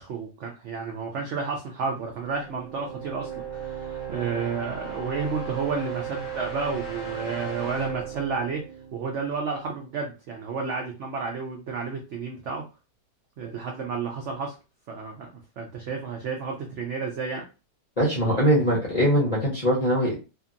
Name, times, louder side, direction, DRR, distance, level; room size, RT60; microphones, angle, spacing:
voice 1, 0.0-8.6 8.9-12.6 13.4-14.6 14.9-15.3 15.6-17.5, right 5 dB, 80° right, 1 dB, 0.6 m, -31 dB
sound 1, 2.0-9.8, right 7 dB, 30° right, 0.5 m, -36 dB
voice 2, 18.0-20.1, equal, 40° left, -5 dB, 0.5 m, -22 dB
2.7 x 2.6 x 2.4 m, 0.30 s
omnidirectional pair, 1.9 m